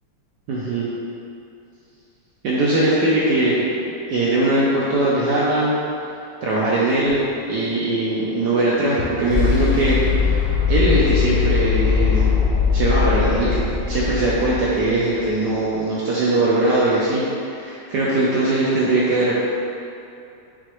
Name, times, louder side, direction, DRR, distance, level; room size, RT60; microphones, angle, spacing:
voice 1, 0.5-0.9 2.4-5.8 6.4-7.2 7.5-10.4 10.7-12.3 12.7-13.6 13.9-19.4, right 2 dB, 80° right, -7 dB, 0.9 m, -20 dB
sound 1, 7.1-15.2, left 6 dB, 75° left, 1.1 m, -21 dB
5.8 x 2.4 x 3.0 m, 2.7 s
omnidirectional pair, 2.4 m